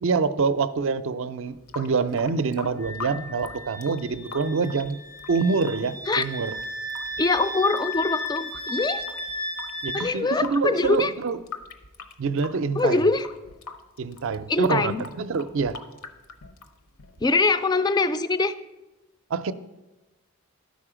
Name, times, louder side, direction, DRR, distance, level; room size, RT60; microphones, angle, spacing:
voice 1, 0.0-5.0 5.3-6.5 9.8-11.4 12.2-13.0 14.0-15.7 19.3-19.5, right 4 dB, 60° right, 13 dB, 0.4 m, -26 dB
Water tap faucet / Sink (filling or washing) / Drip, 1.5-17.4, left 4 dB, 70° left, 0.8 m, -43 dB
Wind instrument woodwind instrument, 2.8-10.0, left 1 dB, 90° left, 3.4 m, -35 dB
voice 2, 7.2-9.0 9.9-11.1 12.8-13.3 14.5-15.0 17.2-18.5, left 3 dB, 20° left, 12 dB, 0.3 m, -23 dB
12.5 x 5.2 x 4.9 m, 1.1 s
head